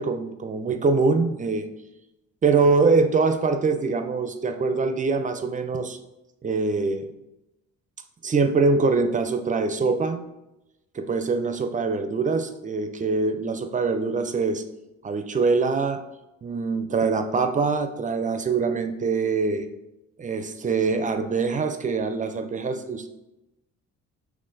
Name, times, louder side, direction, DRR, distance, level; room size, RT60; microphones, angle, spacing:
voice 1, 0.0-1.7 2.4-6.0 6.4-7.1 8.2-10.2 10.9-14.6 15.0-16.0 16.4-19.7 20.2-23.1, right 4 dB, 25° right, 8 dB, 0.4 m, -23 dB
5.6 x 3.0 x 2.6 m, 0.94 s
cardioid pair, 90°, 30 cm